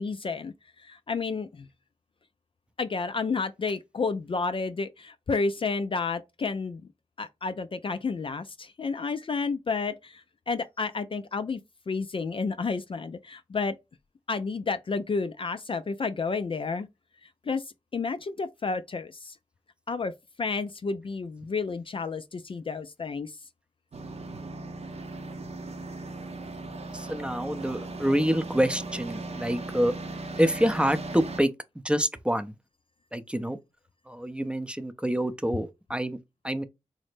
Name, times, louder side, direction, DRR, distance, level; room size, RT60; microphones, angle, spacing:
voice 1, 0.0-1.7 2.8-6.8 7.2-11.6 11.9-13.8 14.3-16.9 17.2-17.6 17.9-19.4 19.9-20.1 20.4-23.4, left 4 dB, 40° left, 0.4 m, -31 dB
sound 1, 23.9-31.4, right 2 dB, 55° right, 0.6 m, -38 dB
voice 2, 26.9-29.9 30.4-31.5 31.8-32.5 33.1-33.6 34.1-36.2 36.4-36.6, equal, 10° right, 0.5 m, -27 dB
3.9 x 2.1 x 3.2 m
cardioid pair, 40°, 13 cm